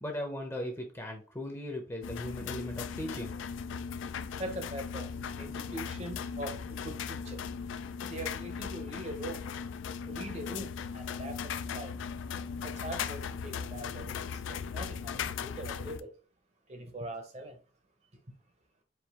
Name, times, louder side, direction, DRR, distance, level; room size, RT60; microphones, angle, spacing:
voice 1, 0.0-3.3, left 1 dB, 15° left, 0.6 m, -38 dB
sound 1, 2.0-16.0, left 6 dB, 80° left, 0.3 m, -38 dB
voice 2, 4.4-5.1 5.4-6.6 6.8-7.4 8.0-9.4 10.1-11.9 12.6-14.1 14.5-16.1 16.7-17.6, right 1 dB, 35° right, 0.7 m, -42 dB
4.6 x 2.5 x 3.5 m
head